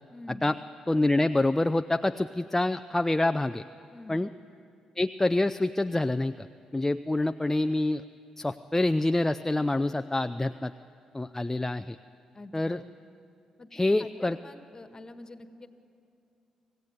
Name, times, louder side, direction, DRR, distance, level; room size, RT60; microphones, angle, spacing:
voice 1, 0.1-0.5 3.9-4.3 12.3-12.9 13.6-15.7, left 2 dB, 30° left, 9 dB, 1.6 m, -46 dB
voice 2, 0.9-3.6 4.1-4.3 5.0-6.5 6.7-8.0 8.4-10.7 11.1-12.0 12.5-12.8 13.7-14.4, left 2 dB, 15° left, 9 dB, 0.5 m, -26 dB
26.0 x 15.0 x 9.5 m, 2.6 s
hypercardioid pair, 45°, 2 cm